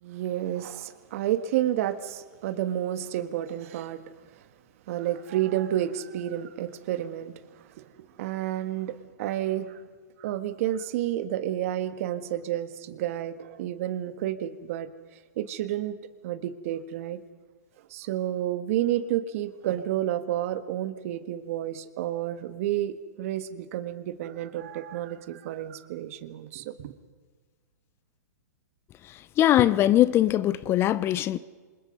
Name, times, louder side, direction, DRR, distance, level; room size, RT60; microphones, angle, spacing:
voice 1, 0.0-4.0 4.9-7.8 8.2-9.8 10.2-14.9 15.4-16.0 16.2-17.2 17.9-26.9, right 12 dB, 55° right, 1.8 m, -30 dB
voice 2, 29.4-31.4, left 13 dB, 25° left, 0.7 m, -21 dB
28.5 x 26.5 x 5.4 m
hypercardioid pair, 130°, 9 cm